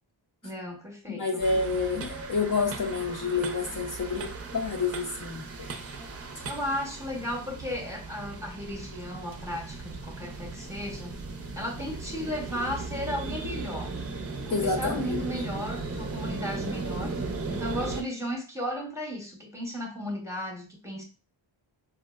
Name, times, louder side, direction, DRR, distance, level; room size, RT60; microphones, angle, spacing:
voice 1, 0.4-1.5 6.4-11.2 11.5-13.9 14.5-17.1 17.5-21.0, equal, 5° right, 0 dB, 0.9 m, -35 dB
voice 2, 1.1-5.4 14.5-15.2, left 4 dB, 45° left, 1 dB, 0.7 m, -28 dB
sound 1, 1.4-18.0, right 3 dB, 30° right, 0.6 m, -37 dB
4.5 x 2.0 x 2.3 m, 0.32 s
cardioid pair, 80°, 46 cm